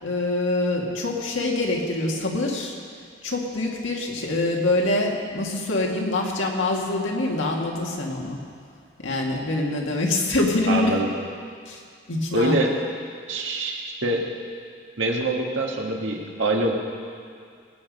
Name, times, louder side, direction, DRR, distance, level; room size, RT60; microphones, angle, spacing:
voice 1, 0.0-2.8 3.2-8.4 9.0-11.0 11.7-11.8 12.1-12.6, left 2 dB, 85° left, -1 dB, 2.0 m, -25 dB
voice 2, 10.7-11.1 12.3-12.7 13.3-14.3 15.0-16.8, right 2 dB, 80° right, 0 dB, 1.8 m, -24 dB
20.5 x 8.5 x 5.4 m, 2.2 s
head